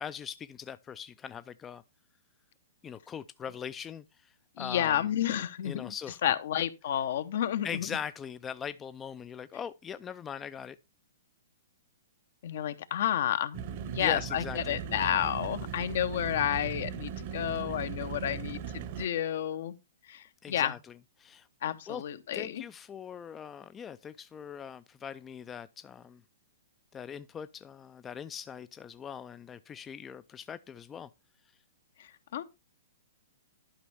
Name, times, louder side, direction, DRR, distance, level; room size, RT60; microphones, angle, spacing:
voice 1, 0.0-1.8 2.8-5.0 5.6-6.2 7.6-10.8 14.0-14.8 20.4-20.8 21.2-21.5 21.9-22.0 22.3-26.2 26.9-31.1, left 8 dB, 15° left, 0.3 m, -41 dB
voice 2, 4.6-5.9 6.2-7.9 12.4-19.8 20.1-20.7 21.6-22.6 32.0-32.4, left 10 dB, 60° left, 0.8 m, -31 dB
sound 1, 13.5-19.1, right 8 dB, 45° right, 0.8 m, -38 dB
11.5 x 5.3 x 3.4 m
hypercardioid pair, 140°, 0 cm